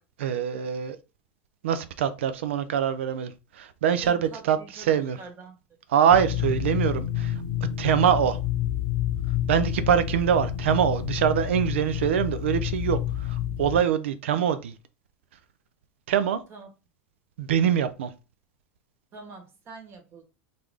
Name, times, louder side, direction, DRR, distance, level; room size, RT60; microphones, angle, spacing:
voice 1, 0.2-1.0 1.6-3.3 3.6-5.2 5.9-7.3 7.8-8.4 9.5-13.0 13.3-14.7 16.1-16.4 17.4-18.1, right 9 dB, 85° right, 0.4 m, -24 dB
voice 2, 4.0-5.6 16.5-16.7 19.1-20.2, right 4 dB, 40° right, 1.1 m, -45 dB
sound 1, 6.1-13.8, left 11 dB, 75° left, 0.6 m, -29 dB
3.1 x 2.5 x 3.5 m
hypercardioid pair, 105°, 6 cm